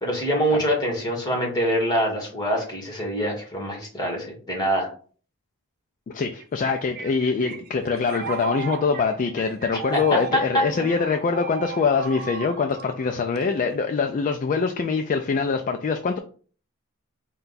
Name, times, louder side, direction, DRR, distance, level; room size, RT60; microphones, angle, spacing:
voice 1, 0.0-4.9 9.7-10.4, equal, 20° left, 0 dB, 1.4 m, -25 dB
voice 2, 6.1-16.2, left 5 dB, 35° left, 5 dB, 0.3 m, -24 dB
sound 1, 6.4-13.9, right 8 dB, 45° right, 0.5 m, -36 dB
4.6 x 2.2 x 4.0 m, 0.42 s
head